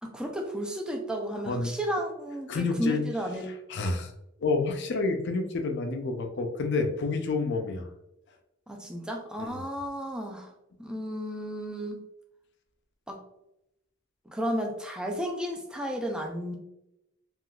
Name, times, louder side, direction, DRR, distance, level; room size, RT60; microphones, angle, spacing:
voice 1, 0.0-3.5 8.7-10.5 10.8-12.0 13.1-13.2 14.3-16.6, equal, 5° right, 1 dB, 0.4 m, -33 dB
voice 2, 2.5-3.0 3.7-4.1 4.4-7.9 9.4-9.6, left 3 dB, 60° left, 5 dB, 0.5 m, -29 dB
3.6 x 2.4 x 2.3 m, 0.85 s
head